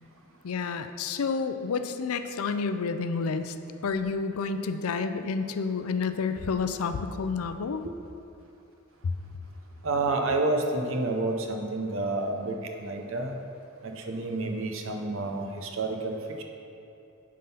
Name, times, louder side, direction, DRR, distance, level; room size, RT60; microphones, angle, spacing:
voice 1, 0.4-3.5 3.8-7.8 9.0-9.1, left 5 dB, 85° left, 9 dB, 0.4 m, -29 dB
voice 2, 9.8-13.4 13.8-16.4, right 2 dB, 65° right, 3 dB, 0.8 m, -29 dB
9.5 x 3.8 x 5.6 m, 2.9 s
head